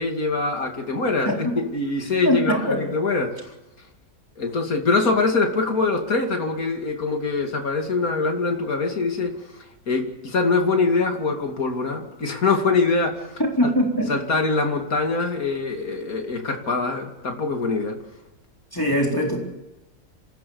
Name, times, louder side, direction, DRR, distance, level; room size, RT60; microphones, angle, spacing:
voice 1, 0.0-1.5 1.7-3.3 4.4-9.3 9.9-13.3 14.1-18.0, left 3 dB, 80° left, 3 dB, 3.0 m, -23 dB
voice 2, 1.3-1.6 2.2-2.8 13.4-14.1 18.7-19.4, equal, 15° left, 0 dB, 3.8 m, -22 dB
26.5 x 16.5 x 7.1 m, 1.0 s
omnidirectional pair, 1.5 m